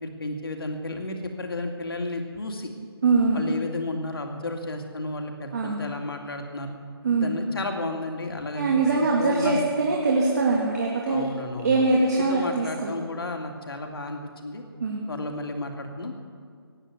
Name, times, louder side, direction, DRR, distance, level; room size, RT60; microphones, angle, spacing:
voice 1, 0.0-2.7 3.3-6.7 7.2-9.7 11.1-11.8 12.3-14.6 15.1-16.1, left 2 dB, 60° left, 4 dB, 2.5 m, -32 dB
voice 2, 3.0-3.4 5.5-5.8 7.0-7.3 8.5-11.2 11.6-12.9 14.8-15.0, right 3 dB, 40° right, -2 dB, 2.2 m, -22 dB
17.0 x 9.9 x 8.1 m, 2.2 s
figure-of-eight pair, 155°, 14 cm